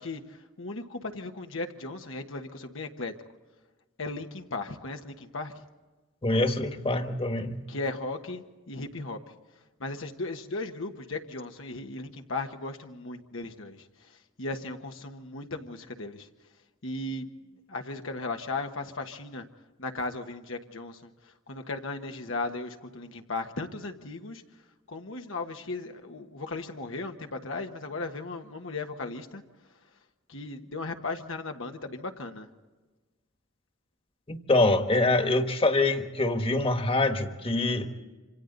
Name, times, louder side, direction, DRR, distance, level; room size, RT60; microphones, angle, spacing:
voice 1, 0.0-3.1 4.0-5.6 7.7-9.4 9.8-16.3 16.8-17.3 17.7-19.5 19.8-24.4 24.9-29.4 30.3-32.5, left 3 dB, 85° left, 4 dB, 1.4 m, -36 dB
voice 2, 6.2-7.6 34.3-37.9, left 2 dB, 30° left, 7 dB, 1.4 m, -25 dB
27.0 x 26.0 x 4.0 m, 1.3 s
head